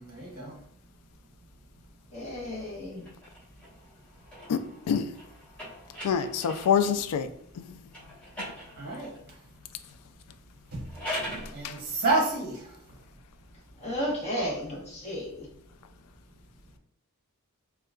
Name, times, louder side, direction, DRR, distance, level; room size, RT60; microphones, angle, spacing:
voice 1, 0.0-0.5 8.8-9.1 10.7-10.8 11.2-12.7, right 2 dB, 45° right, 0.7 m, -30 dB
voice 2, 2.1-3.1 13.8-15.5, equal, 30° left, 1.1 m, -33 dB
sound 1, 3.0-7.0 7.9-9.3 10.7-11.5, equal, 5° left, 1.2 m, -41 dB
voice 3, 4.5-5.1 6.0-7.3 7.5-7.8 11.5-11.8, left 7 dB, 90° left, 0.3 m, -27 dB
3.6 x 2.3 x 2.3 m
head